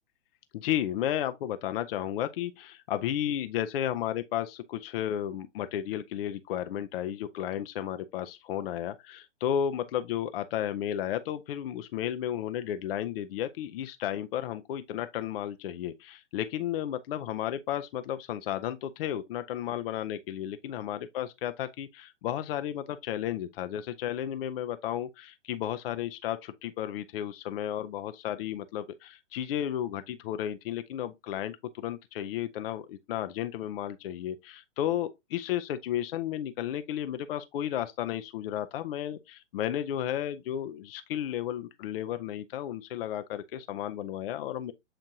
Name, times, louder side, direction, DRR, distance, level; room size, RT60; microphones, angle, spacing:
voice 1, 0.5-44.7, left 11 dB, 55° left, 0.5 m, -33 dB
7.5 x 2.5 x 2.7 m
hypercardioid pair, 140°, 36 cm